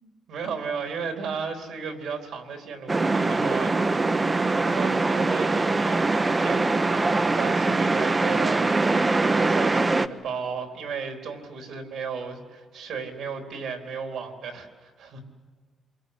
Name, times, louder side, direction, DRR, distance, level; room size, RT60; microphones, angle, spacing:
voice 1, 0.3-4.0 4.6-15.2, right 5 dB, 75° right, 4 dB, 3.8 m, -34 dB
sound 1, 2.9-10.1, right 3 dB, 25° right, 0.9 m, -23 dB
27.5 x 23.0 x 8.1 m, 1.5 s
cardioid pair, 90°, 0 cm